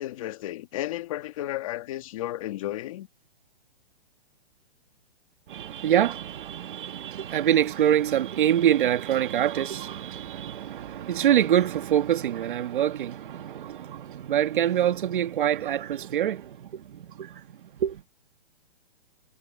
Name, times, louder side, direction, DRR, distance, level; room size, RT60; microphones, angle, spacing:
voice 1, 0.0-3.1, left 14 dB, 35° left, 1.6 m, -33 dB
voice 2, 5.5-16.8 17.2-17.4 17.8-18.0, right 11 dB, 55° right, 1.8 m, -25 dB
hypercardioid pair, 170°, 31 cm